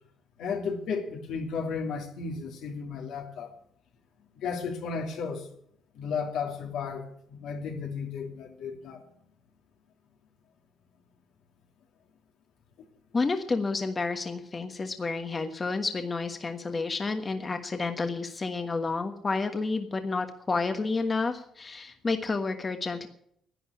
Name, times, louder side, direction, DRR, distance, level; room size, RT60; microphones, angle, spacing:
voice 1, 0.4-3.5 4.3-5.5 5.9-9.0, left 5 dB, 85° left, 2.7 m, -34 dB
voice 2, 13.1-23.1, left 3 dB, 30° left, 1.3 m, -30 dB
11.5 x 9.5 x 9.9 m
cardioid pair, 90°, 0 cm